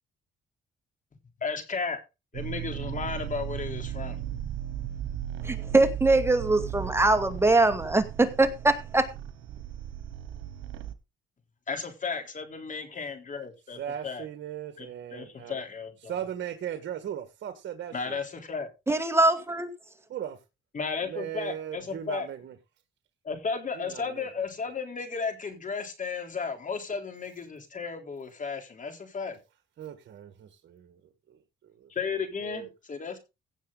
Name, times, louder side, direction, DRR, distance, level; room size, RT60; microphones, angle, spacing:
voice 1, 1.4-2.0 2.3-4.2 11.7-14.3 14.8-16.2 17.9-18.7 20.7-22.3 23.2-29.4 31.9-33.2, left 5 dB, 40° left, 3.8 m, -34 dB
sound 1, 2.3-10.9, right 11 dB, 90° right, 1.2 m, -36 dB
voice 2, 5.4-9.1 18.9-19.7, right 2 dB, 10° right, 2.3 m, -22 dB
voice 3, 13.8-15.5 16.1-18.2 20.1-20.4 21.1-22.5 23.8-24.3 29.8-31.0 31.3-31.4 31.8-31.9 32.4-32.7, right 10 dB, 65° right, 1.7 m, -37 dB
16.5 x 7.1 x 4.0 m
cardioid pair, 90°, 20 cm